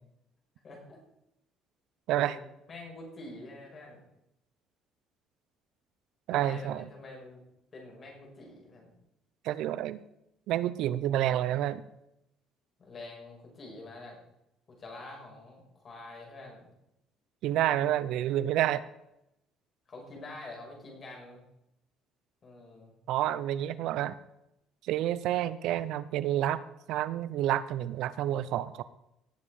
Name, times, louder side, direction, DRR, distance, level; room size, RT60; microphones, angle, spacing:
voice 1, 0.6-1.0 2.2-2.4 2.7-4.0 6.3-7.4 7.7-8.9 12.8-14.2 14.7-16.7 17.5-17.8 19.9-21.4 22.4-22.9, left 2 dB, 35° left, 0 dB, 5.7 m, -46 dB
voice 2, 6.3-6.9 9.4-10.0 10.5-11.8 17.4-18.8 23.1-24.2 24.8-26.6 26.9-28.8, right 12 dB, 75° right, 16 dB, 0.8 m, -29 dB
18.5 x 7.6 x 4.9 m, 0.85 s
cardioid pair, 115°, 0 cm